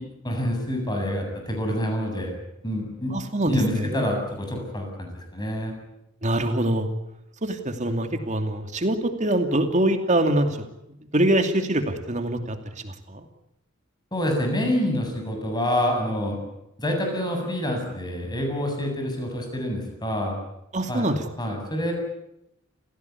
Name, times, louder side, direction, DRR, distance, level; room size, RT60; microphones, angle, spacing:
voice 1, 0.0-2.3 2.6-3.1 3.4-5.7 14.1-16.4 16.8-20.4 20.9-21.1 21.4-21.9, equal, 20° left, 2 dB, 7.6 m, -27 dB
voice 2, 3.1-4.0 6.2-6.9 7.4-10.7 11.1-12.6 12.8-13.2 20.7-21.6, right 1 dB, 35° right, 7 dB, 2.7 m, -24 dB
29.0 x 16.5 x 9.6 m, 0.83 s
head